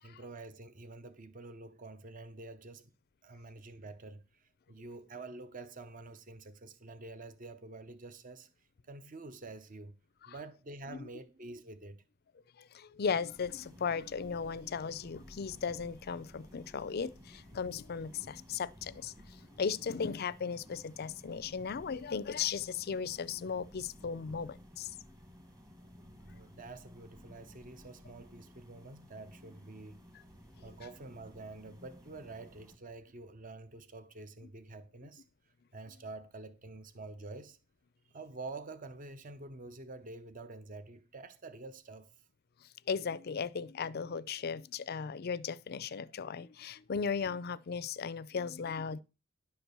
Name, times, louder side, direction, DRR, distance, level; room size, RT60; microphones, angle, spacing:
voice 1, 0.0-2.9 3.2-10.0 10.3-12.0 26.2-30.0 30.6-35.2 35.7-37.6 38.1-42.1, right 2 dB, 40° right, 0.8 m, -48 dB
voice 2, 12.6-24.9 42.9-49.0, left 6 dB, 50° left, 0.4 m, -36 dB
sound 1, 13.3-32.8, equal, 15° right, 1.4 m, -55 dB
10.5 x 4.5 x 6.7 m
head